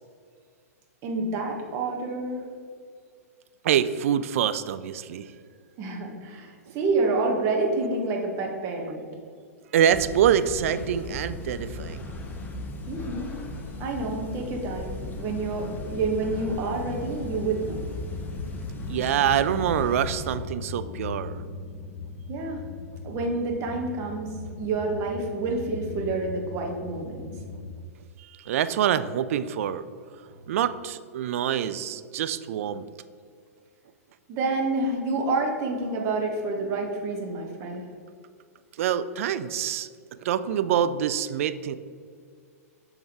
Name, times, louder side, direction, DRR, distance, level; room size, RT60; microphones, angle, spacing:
voice 1, 1.0-2.5 5.8-9.1 12.9-13.4 13.8-17.8 22.3-22.6 23.0-24.3 24.6-27.3 34.3-37.8, right 3 dB, 35° right, 0 dB, 1.3 m, -28 dB
voice 2, 3.6-5.3 9.7-12.1 18.9-21.4 28.4-29.8 30.5-32.9 38.8-39.9 40.2-41.8, right 9 dB, 60° right, 13 dB, 0.4 m, -25 dB
sound 1, 9.9-20.4, left 2 dB, 20° left, 0.8 m, -37 dB
sound 2, 15.1-27.7, left 4 dB, 55° left, 0.6 m, -39 dB
7.2 x 3.5 x 4.6 m, 2.1 s
hypercardioid pair, 110°, 8 cm